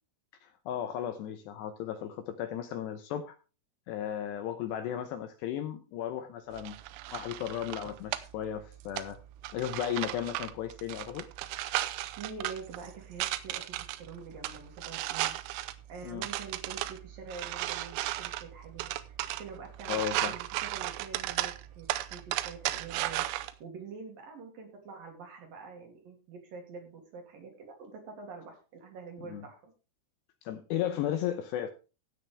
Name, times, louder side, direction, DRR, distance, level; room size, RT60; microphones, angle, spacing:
voice 1, 0.4-3.4 3.9-6.8 7.1-9.2 9.5-11.3 16.0-16.3 19.9-20.4 29.2-29.5 30.4-31.7, left 10 dB, 80° left, 9 dB, 2.5 m, -35 dB
sound 1, 6.5-23.5, right 15 dB, 85° right, 3.4 m, -36 dB
voice 2, 12.1-15.4 15.9-18.9 19.4-29.7, right 5 dB, 50° right, 2 dB, 4.0 m, -46 dB
16.5 x 7.7 x 3.4 m, 0.32 s
omnidirectional pair, 5.9 m